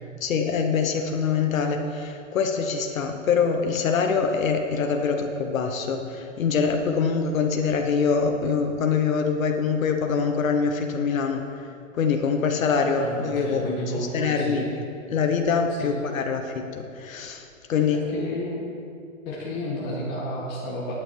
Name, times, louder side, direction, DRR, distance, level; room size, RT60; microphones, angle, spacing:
voice 1, 0.2-11.4 11.9-13.6 13.9-14.7 15.1-18.0, left 5 dB, 80° left, 4 dB, 1.2 m, -24 dB
voice 2, 13.0-14.7 15.8-16.0 17.8-18.7 19.3-20.9, left 1 dB, 25° left, -5 dB, 1.7 m, -31 dB
11.0 x 9.2 x 4.7 m, 2.5 s
hypercardioid pair, 155°, 40 cm